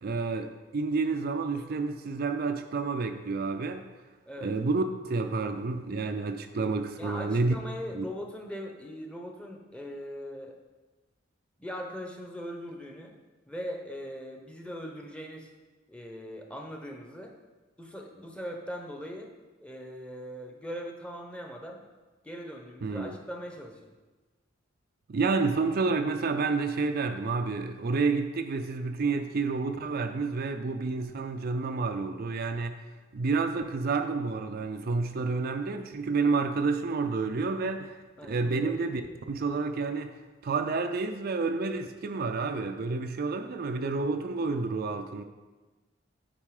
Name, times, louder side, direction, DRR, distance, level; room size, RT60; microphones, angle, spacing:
voice 1, 0.0-3.8 4.4-7.6 8.0-8.1 22.8-23.1 25.1-32.8 33.1-37.9 38.3-39.0 39.3-40.2 40.4-45.2, right 4 dB, 50° right, 6 dB, 0.4 m, -29 dB
voice 2, 7.0-10.6 11.6-13.1 13.5-15.5 15.9-17.3 17.8-19.3 19.6-21.8 22.2-23.9 38.2-38.7, equal, 5° left, 2 dB, 0.8 m, -40 dB
8.9 x 4.6 x 4.8 m, 1.3 s
head